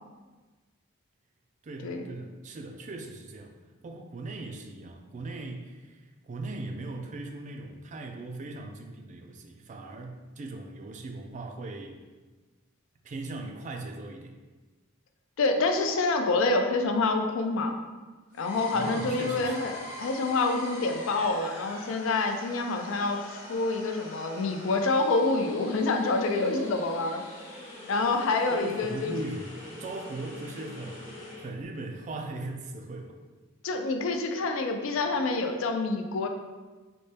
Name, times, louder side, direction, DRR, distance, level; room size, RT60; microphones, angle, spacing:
voice 1, 1.6-3.5 3.8-12.0 13.0-14.4 18.7-19.7 28.5-29.5 29.8-33.2, right 2 dB, 35° right, 4 dB, 0.3 m, -39 dB
voice 2, 15.4-17.7 18.4-27.2 27.9-29.1 33.6-36.3, left 3 dB, 70° left, 5 dB, 0.4 m, -27 dB
sound 1, 18.3-31.5, left 1 dB, 40° left, 1.0 m, -43 dB
4.1 x 2.2 x 3.2 m, 1.3 s
head